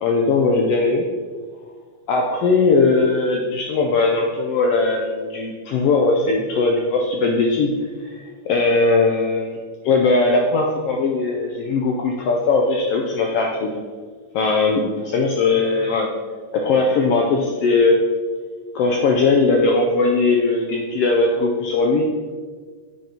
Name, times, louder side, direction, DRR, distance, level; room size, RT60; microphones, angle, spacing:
voice 1, 0.0-1.0 2.1-7.7 8.0-9.6 9.8-13.7 14.3-14.8 15.1-16.1 16.5-18.0 18.7-22.1, left 3 dB, 80° left, 0 dB, 1.4 m, -19 dB
8.6 x 6.2 x 2.9 m, 1.5 s
omnidirectional pair, 3.3 m